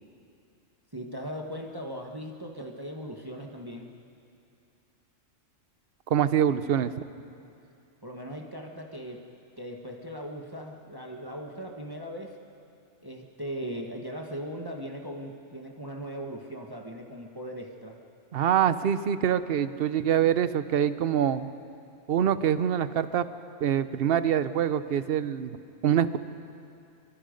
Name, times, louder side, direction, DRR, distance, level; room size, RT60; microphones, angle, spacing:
voice 1, 0.9-3.9 8.0-9.3 9.6-12.4 13.0-18.0, equal, 20° right, 1 dB, 1.3 m, -39 dB
voice 2, 6.1-6.9 18.3-21.5 22.1-23.2 23.6-25.6 25.8-26.2, right 9 dB, 55° right, 13 dB, 0.8 m, -25 dB
25.0 x 23.5 x 5.2 m, 2.6 s
omnidirectional pair, 1.3 m